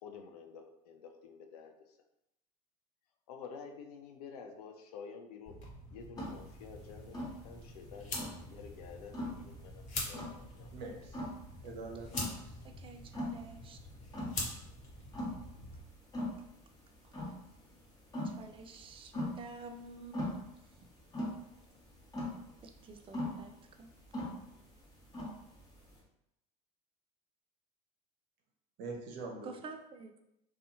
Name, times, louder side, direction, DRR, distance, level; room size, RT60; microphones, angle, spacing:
voice 1, 0.0-2.0 3.3-5.6 5.9-10.7, left 6 dB, 80° left, 5 dB, 0.4 m, -50 dB
sound 1, 5.4-15.8, left 2 dB, 40° left, 0.9 m, -45 dB
sound 2, 6.2-26.0, left 1 dB, 20° left, 1.1 m, -42 dB
voice 2, 10.7-11.2 11.6-12.6 28.8-29.5, right 3 dB, 60° right, 1 dB, 0.7 m, -44 dB
voice 3, 12.6-13.8 17.0-17.3 18.2-20.9 22.6-23.9 29.4-30.2, right 3 dB, 25° right, 6 dB, 0.4 m, -50 dB
2.6 x 2.3 x 2.6 m, 0.83 s
hypercardioid pair, 80°, 20 cm